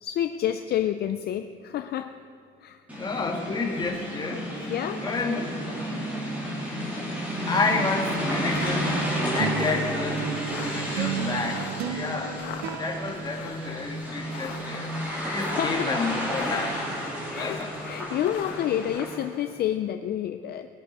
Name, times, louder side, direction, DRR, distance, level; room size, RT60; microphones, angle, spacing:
voice 1, 0.0-2.2 2.6-2.8 4.7-5.1 15.5-15.9 17.3-20.7, left 11 dB, 50° left, 8 dB, 0.5 m, -29 dB
sound 1, 2.9-19.3, equal, 5° right, 3.0 m, -32 dB
voice 2, 3.0-5.7 7.5-9.0 9.3-10.3 10.6-12.4 12.8-14.9 15.2-16.8 17.4-17.7, left 3 dB, 20° left, 1 dB, 1.6 m, -30 dB
sound 2, 8.3-19.1, left 7 dB, 85° left, 1.4 m, -41 dB
sound 3, 8.5-14.2, right 10 dB, 85° right, 0.7 m, -34 dB
21.0 x 8.4 x 5.4 m, 2.4 s
cardioid pair, 165°, 21 cm